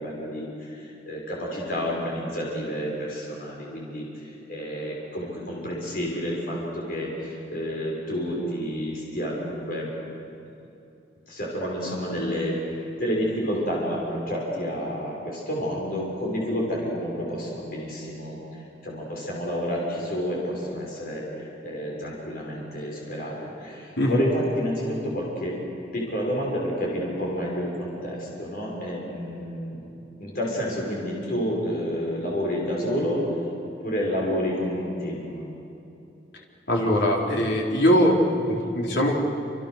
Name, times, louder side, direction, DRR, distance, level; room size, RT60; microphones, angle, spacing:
voice 1, 0.0-9.9 11.3-18.4 18.8-25.5 25.9-29.7 30.2-33.2 33.6-35.4, equal, 55° left, -3 dB, 6.4 m, -29 dB
voice 2, 36.7-39.2, equal, 70° left, -2 dB, 4.4 m, -21 dB
28.5 x 27.0 x 6.7 m, 2.8 s
head